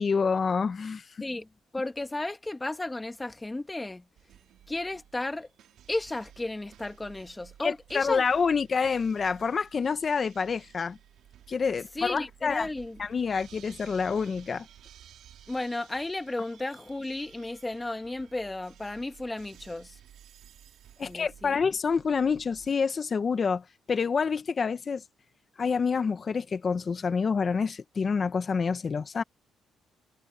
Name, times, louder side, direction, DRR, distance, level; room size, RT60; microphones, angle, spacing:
voice 1, 0.0-1.2 7.6-11.0 11.5-12.7 13.0-14.7 21.0-25.0 25.6-29.2, left 5 dB, 40° left, 1.1 m, -27 dB
voice 2, 1.7-4.0 4.7-5.5 5.9-8.2 11.9-13.0 15.5-20.0 21.0-21.6, left 2 dB, 15° left, 1.6 m, -34 dB
sound 1, 4.1-22.7, right 11 dB, 75° right, 3.5 m, -55 dB
cardioid pair, 90°, 0 cm